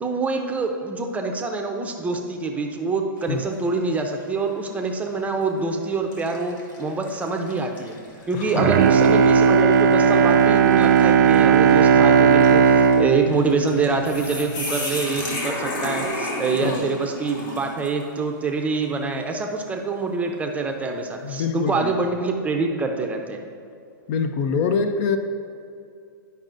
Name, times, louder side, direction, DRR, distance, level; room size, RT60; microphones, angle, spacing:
voice 1, 0.0-8.0 8.3-23.4, right 4 dB, 10° right, 3 dB, 0.6 m, -25 dB
sound 1, 3.2-3.7 4.2-4.3 5.3-5.5 6.1-18.1, left 1 dB, 65° left, 1.6 m, -34 dB
voice 2, 8.3-8.8 16.6-16.9 19.2-19.3 21.2-21.9 24.1-25.2, left 5 dB, 45° left, 7 dB, 0.5 m, -25 dB
Bowed string instrument, 8.5-14.7 15.1-15.2, right 6 dB, 60° right, 0.4 m, -17 dB
10.5 x 5.4 x 2.5 m, 2.4 s
hypercardioid pair, 125°, 11 cm